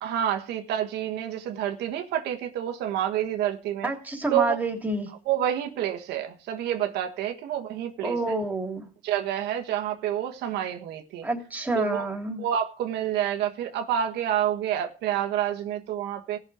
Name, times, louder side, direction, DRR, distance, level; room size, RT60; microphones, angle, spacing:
voice 1, 0.0-3.9 4.3-4.6 5.3-8.2 9.0-11.3 11.7-12.0 12.4-16.4, right 10 dB, 80° right, 1.4 m, -28 dB
voice 2, 3.8-5.1 8.0-8.9 11.2-12.5, right 2 dB, 10° right, 3.3 m, -28 dB
17.5 x 6.5 x 4.9 m
cardioid pair, 110°, 17 cm